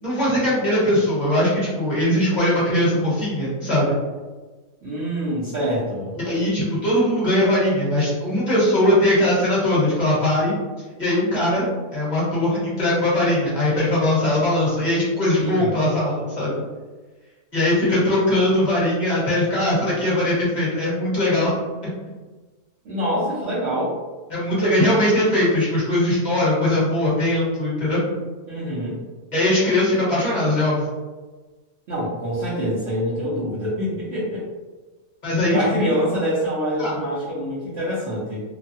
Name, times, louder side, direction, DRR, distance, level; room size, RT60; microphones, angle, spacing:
voice 1, 0.0-4.0 6.2-10.5 11.0-11.7 11.9-16.6 17.5-21.6 24.3-28.1 29.3-30.9 35.2-36.0 36.8-37.0, left 1 dB, 30° left, -8 dB, 1.3 m, -20 dB
voice 2, 4.8-6.1 15.4-15.8 22.8-23.9 28.5-29.0 31.9-34.4 35.5-38.4, equal, 55° right, -10 dB, 0.9 m, -25 dB
3.0 x 2.3 x 2.7 m, 1.3 s
omnidirectional pair, 1.5 m